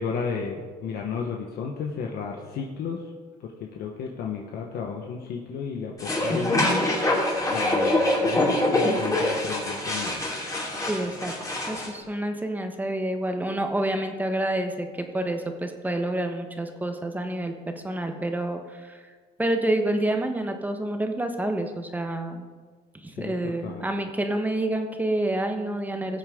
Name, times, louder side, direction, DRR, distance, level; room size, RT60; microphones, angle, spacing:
voice 1, 0.0-3.0 3.4-6.8 7.5-10.2 23.2-23.3 23.6-23.9, left 6 dB, 70° left, 0 dB, 1.3 m, -33 dB
sound 1, 6.0-11.9, left 1 dB, 20° left, 3.1 m, -25 dB
voice 2, 10.9-11.3 11.7-19.0 19.4-22.5 23.0-26.2, right 1 dB, 10° right, 5 dB, 1.3 m, -28 dB
19.5 x 7.8 x 3.8 m, 1.5 s
cardioid pair, 110°, 17 cm